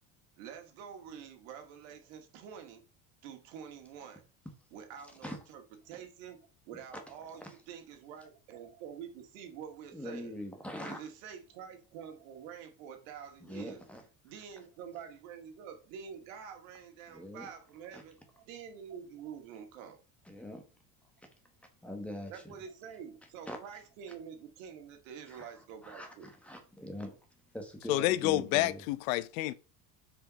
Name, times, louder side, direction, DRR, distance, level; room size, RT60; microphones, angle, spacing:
voice 1, 0.4-2.8 3.2-4.2 4.7-10.3 10.8-13.8 14.2-20.0 22.3-26.3, right 7 dB, 70° right, 2.0 m, -47 dB
voice 2, 9.9-11.0 13.4-14.0 17.1-17.5 17.9-18.0 20.2-20.6 21.8-22.5 23.5-23.6 25.3-25.5 25.8-27.1 27.5-28.8, equal, 5° left, 1.1 m, -42 dB
voice 3, 27.9-29.5, left 16 dB, 80° left, 0.7 m, -29 dB
6.2 x 5.0 x 5.1 m
cardioid pair, 175°, 40 cm